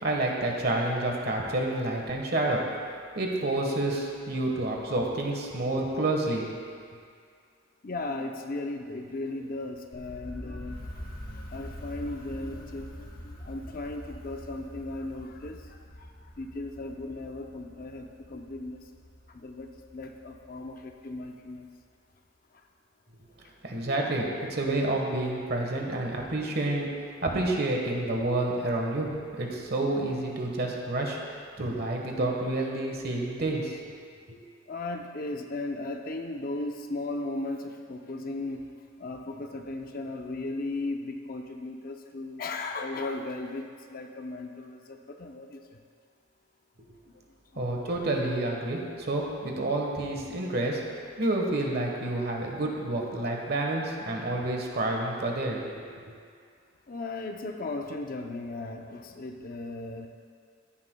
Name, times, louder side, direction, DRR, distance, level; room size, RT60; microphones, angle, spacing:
voice 1, 0.0-2.7 3.1-6.5 23.6-26.9 27.2-33.7 34.3-34.4 47.5-55.8, right 2 dB, 50° right, 0 dB, 1.3 m, -29 dB
voice 2, 7.8-18.9 19.3-21.7 22.5-22.7 23.4-23.5 34.7-38.7 39.0-45.8 47.1-47.6 56.9-60.1, left 2 dB, 45° left, 4 dB, 0.6 m, -37 dB
sound 1, 9.9-21.7, equal, 25° left, 1.9 m, -45 dB
14.0 x 10.0 x 2.3 m, 2.2 s
head